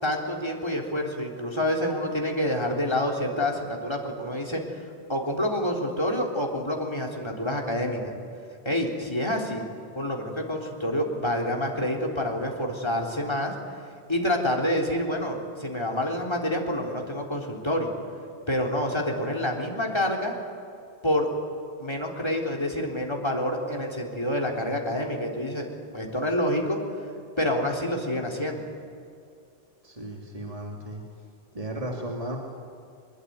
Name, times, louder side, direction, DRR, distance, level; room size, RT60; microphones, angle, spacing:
voice 1, 0.0-4.6 5.1-8.1 8.7-9.7 9.9-13.5 14.1-17.9 18.5-20.3 21.0-21.3 21.8-25.7 25.9-26.8 27.4-28.6, left 1 dB, 25° left, 0 dB, 3.8 m, -27 dB
voice 2, 29.8-31.0 31.5-32.4, right 1 dB, 30° right, 0 dB, 2.8 m, -35 dB
24.5 x 22.0 x 9.5 m, 2.5 s
omnidirectional pair, 1.1 m